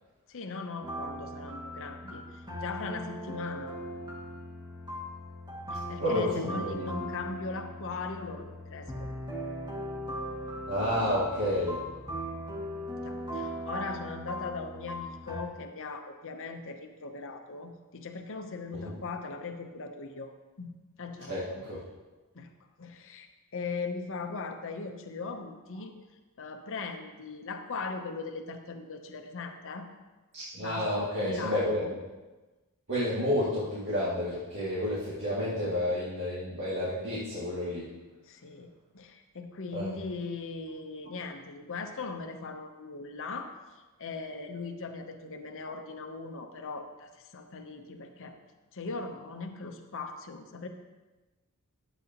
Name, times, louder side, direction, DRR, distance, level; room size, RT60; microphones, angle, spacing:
voice 1, 0.3-3.7 5.7-9.1 13.0-20.3 20.6-20.7 21.0-21.7 22.3-22.5 22.8-23.3 23.5-25.9 26.4-29.9 30.6-31.9 38.3-48.4 48.7-50.7, left 4 dB, 60° left, 5 dB, 0.8 m, -39 dB
sound 1, 0.8-15.4, equal, 20° right, 2.1 m, -39 dB
voice 2, 6.0-7.1 10.7-11.8 18.7-19.0 21.3-21.8 30.5-32.0 32.9-37.9 39.7-40.0, left 1 dB, 55° right, -10 dB, 2.3 m, -30 dB
12.0 x 8.2 x 2.9 m, 1.2 s
head